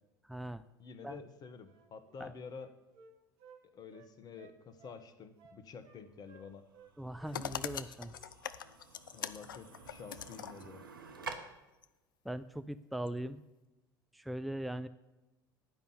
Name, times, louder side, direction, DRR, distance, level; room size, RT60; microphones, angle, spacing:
voice 1, 0.3-0.6 1.0-1.2 2.2-2.3 7.0-8.1 12.2-13.4 14.1-14.9, right 1 dB, ahead, 12 dB, 0.5 m, -40 dB
voice 2, 0.8-2.7 3.7-6.6 9.1-10.8, left 5 dB, 35° left, 10 dB, 1.2 m, -49 dB
Wind instrument woodwind instrument, 1.7-3.6 3.9-5.0 5.4-6.0 6.3-6.9 7.2-7.4 7.7-8.3 8.6-8.8, right 4 dB, 55° right, 1.6 m, -60 dB
sound 1, 6.0-11.3, right 5 dB, 85° right, 1.0 m, -50 dB
sound 2, 7.3-10.7 11.8-11.9 13.1-13.2, left 9 dB, 75° left, 0.5 m, -43 dB
10.5 x 5.4 x 8.6 m, 1.0 s
figure-of-eight pair, 70°, 11 cm